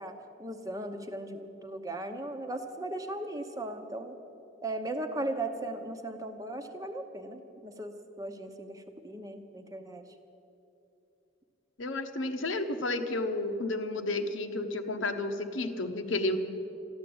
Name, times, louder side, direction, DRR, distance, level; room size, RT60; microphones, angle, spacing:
voice 1, 0.0-4.2 4.6-10.0, right 1 dB, 20° right, 6 dB, 0.9 m, -37 dB
voice 2, 11.8-16.4, left 2 dB, 85° left, 6 dB, 1.1 m, -31 dB
13.5 x 12.0 x 8.6 m, 2.8 s
head